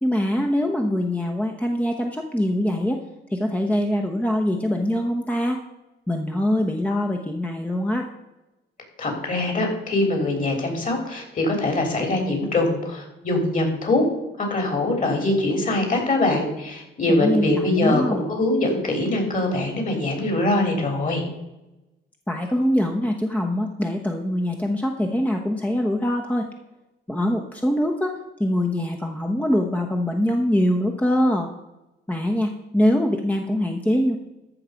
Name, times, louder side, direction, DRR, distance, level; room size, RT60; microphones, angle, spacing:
voice 1, 0.0-3.0 3.3-5.6 6.1-8.1 17.1-18.2 22.3-26.5 27.1-31.5 32.1-34.2, left 1 dB, 5° left, 3 dB, 1.0 m, -23 dB
voice 2, 9.0-14.0 14.4-21.2, left 2 dB, 40° left, 3 dB, 3.7 m, -23 dB
14.0 x 5.7 x 5.2 m, 0.98 s
cardioid pair, 90°, 20 cm